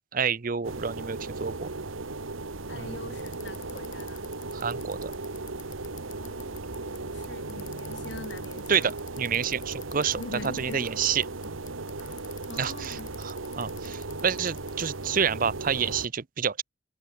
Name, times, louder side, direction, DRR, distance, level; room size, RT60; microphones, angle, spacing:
voice 1, 0.1-1.7 2.7-3.0 4.5-5.1 8.7-10.2 10.5-11.2 12.6-16.6, right 7 dB, 45° right, 0.6 m, -29 dB
sound 1, 0.6-16.1, right 3 dB, 85° right, 1.5 m, -37 dB
voice 2, 2.7-4.3 6.1-8.9 10.2-10.9 12.5-13.1, left 2 dB, 60° left, 2.1 m, -42 dB
Bicycle, 3.2-14.9, left 9 dB, 40° left, 3.4 m, -51 dB
head